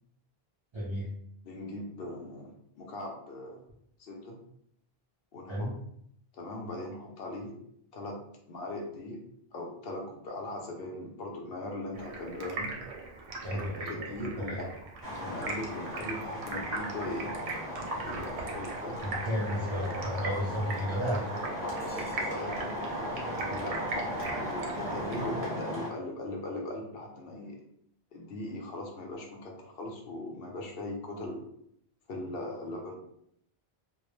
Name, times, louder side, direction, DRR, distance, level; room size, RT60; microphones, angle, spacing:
voice 1, 0.7-1.1 5.5-5.7 13.4-14.6 19.0-21.3 23.5-23.7, equal, 50° right, -6 dB, 0.3 m, -33 dB
voice 2, 1.4-3.6 4.0-4.4 5.3-5.7 6.3-7.5 7.9-8.2 8.5-9.2 9.5-12.7 13.5-14.6 15.2-17.3 18.0-19.0 21.8-23.1 23.5-27.6 28.1-31.4 32.1-32.9, left 1 dB, 70° left, 0 dB, 0.8 m, -39 dB
Stream, 11.9-25.3, right 3 dB, 65° right, 0.7 m, -40 dB
sound 1, 15.0-25.9, equal, 20° right, 0.8 m, -37 dB
2.2 x 2.0 x 3.0 m, 0.72 s
omnidirectional pair, 1.1 m